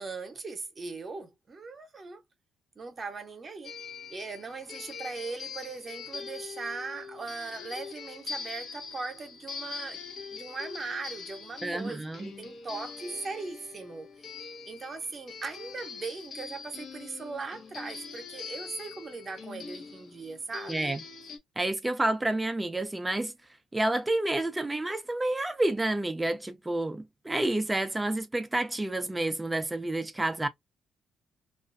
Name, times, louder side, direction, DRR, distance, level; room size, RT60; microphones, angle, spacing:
voice 1, 0.0-2.2 2.7-3.7 4.1-10.0 10.3-14.3 14.7-20.9, right 4 dB, 40° right, 0.8 m, -39 dB
sound 1, 3.6-21.4, left 5 dB, 55° left, 0.7 m, -43 dB
voice 2, 11.6-12.3 20.7-21.0 21.6-23.3 23.7-30.5, right 2 dB, 15° right, 0.4 m, -29 dB
2.4 x 2.1 x 2.5 m
cardioid pair, 90°, 0 cm